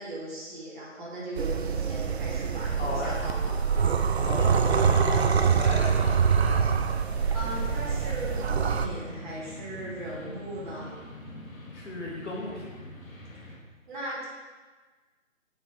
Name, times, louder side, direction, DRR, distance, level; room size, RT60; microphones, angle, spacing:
voice 1, 0.0-3.6 7.3-11.0 13.9-14.2, right 1 dB, 35° right, -7 dB, 2.2 m, -38 dB
sound 1, 1.4-8.9, right 6 dB, 55° right, 0.4 m, -25 dB
voice 2, 2.7-3.2 4.2-6.7 11.7-12.7, left 2 dB, 60° left, -4 dB, 2.2 m, -36 dB
sound 2, 4.7-13.6, left 1 dB, 90° left, 1.6 m, -44 dB
7.0 x 5.6 x 3.7 m, 1.4 s
figure-of-eight pair, 155°, 40 cm